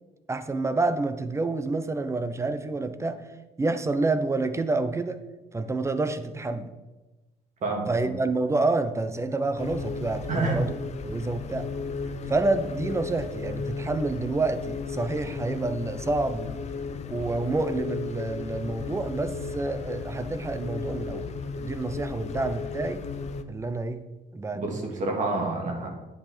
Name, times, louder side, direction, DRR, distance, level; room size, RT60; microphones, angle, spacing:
voice 1, 0.3-3.2 3.6-5.2 5.5-6.7 7.9-10.7 11.0-11.6 12.3-16.6 17.1-21.3 21.6-23.0 23.5-24.0 24.3-25.0, right 3 dB, 15° right, 9 dB, 0.7 m, -28 dB
voice 2, 7.6-8.1 10.3-10.6 24.5-25.9, right 3 dB, 45° right, 1 dB, 2.1 m, -28 dB
sound 1, 9.6-23.4, left 4 dB, 40° left, 0.6 m, -35 dB
9.6 x 5.6 x 4.4 m, 1.1 s
cardioid pair, 110°, 17 cm